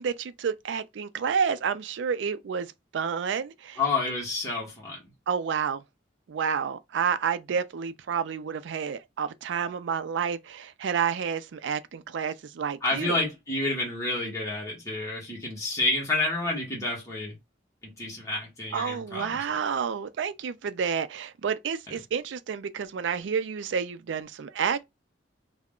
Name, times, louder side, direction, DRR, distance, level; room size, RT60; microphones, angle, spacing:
voice 1, 0.0-3.8 5.3-5.8 6.3-13.2 18.7-24.9, right 6 dB, 75° right, 0.4 m, -30 dB
voice 2, 3.8-5.0 12.8-17.3 17.8-19.4, left 2 dB, 15° left, 1.0 m, -29 dB
2.3 x 2.1 x 3.6 m
head